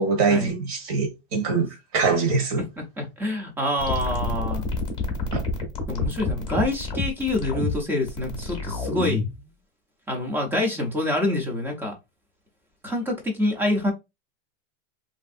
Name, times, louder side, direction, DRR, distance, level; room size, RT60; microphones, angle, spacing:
voice 1, 0.0-1.7 1.9-2.6 5.3-5.4, right 4 dB, 45° right, 1.1 m, -23 dB
voice 2, 2.6-4.6 5.9-9.2 10.1-11.9 12.8-13.9, left 1 dB, 5° right, 0.4 m, -26 dB
sound 1, 3.8-9.4, left 3 dB, 15° left, 0.8 m, -28 dB
3.1 x 2.6 x 2.4 m
supercardioid pair, 150°, 35 cm